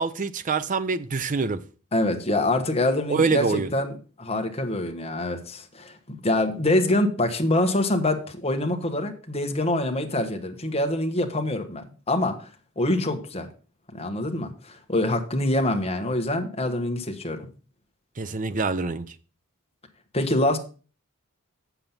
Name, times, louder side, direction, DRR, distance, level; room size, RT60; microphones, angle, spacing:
voice 1, 0.0-1.6 3.1-3.7 18.2-19.1, right 4 dB, 35° right, 0.6 m, -25 dB
voice 2, 1.9-3.9 4.2-12.5 12.8-13.5 13.9-17.5 20.1-20.6, left 1 dB, 30° left, 1.2 m, -25 dB
7.6 x 7.0 x 5.7 m
head